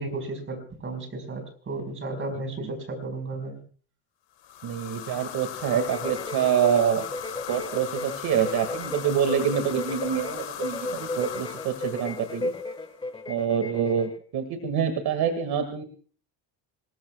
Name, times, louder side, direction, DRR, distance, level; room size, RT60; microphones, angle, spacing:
voice 1, 0.0-3.6, right 2 dB, 30° right, 5 dB, 4.8 m, -34 dB
sound 1, 4.4-12.9, left 10 dB, 70° left, 2.6 m, -38 dB
voice 2, 4.6-7.1 7.5-12.5 13.3-15.8, right 8 dB, 55° right, 8 dB, 2.0 m, -26 dB
sound 2, 5.6-14.2, left 2 dB, 10° left, 1.5 m, -35 dB
26.0 x 19.0 x 2.3 m, 0.43 s
cardioid pair, 150°, 44 cm